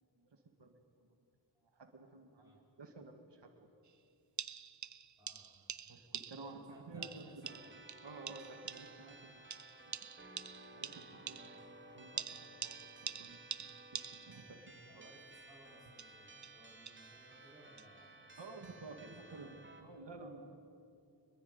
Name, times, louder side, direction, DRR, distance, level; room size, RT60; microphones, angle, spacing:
voice 1, 0.3-0.7 1.8-2.5 2.8-3.7 5.9-6.6 6.9-7.3 8.0-9.6 10.7-11.6 11.9-12.8 13.2-15.1 18.4-19.5 19.8-20.5, right 3 dB, 80° right, 4 dB, 2.1 m, -52 dB
voice 2, 2.4-2.7 5.2-5.8 6.3-7.8 14.9-19.6, right 1 dB, 10° right, -5 dB, 5.0 m, -63 dB
sound 1, 3.9-4.0 4.4-6.7 7.0-9.1 9.5-11.7 12.2-14.5 15.9-17.1 17.8-17.9, right 7 dB, 45° right, 0.6 m, -46 dB
sound 2, 7.4-19.8, right 2 dB, 25° right, 2.5 m, -57 dB
25.0 x 22.0 x 9.5 m, 2.6 s
wide cardioid pair, 95°, 42 cm